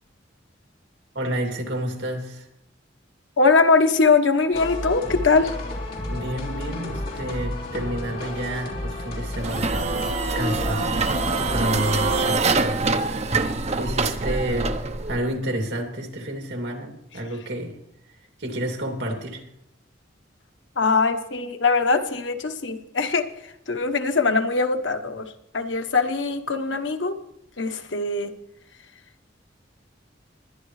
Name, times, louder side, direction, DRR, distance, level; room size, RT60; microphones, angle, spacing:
voice 1, 1.1-2.5 6.0-13.1 13.8-17.8 18.4-19.4, right 1 dB, 65° right, 2 dB, 2.7 m, -30 dB
voice 2, 3.4-5.6 20.8-23.2 23.7-27.2 27.6-28.3, left 4 dB, 75° left, 6 dB, 1.2 m, -21 dB
sound 1, 4.5-12.3, left 1 dB, 55° left, 3.4 m, -32 dB
sound 2, 9.4-15.2, right 3 dB, 35° right, 0.8 m, -25 dB
21.0 x 10.5 x 3.2 m, 0.80 s
head